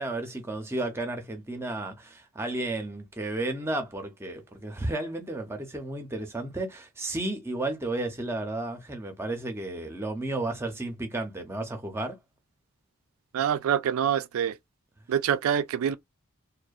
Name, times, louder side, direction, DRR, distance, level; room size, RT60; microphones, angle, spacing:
voice 1, 0.0-12.2, right 2 dB, 10° right, 0.5 m, -33 dB
voice 2, 13.3-14.5 15.1-16.0, right 9 dB, 80° right, 0.3 m, -25 dB
2.6 x 2.0 x 2.3 m
head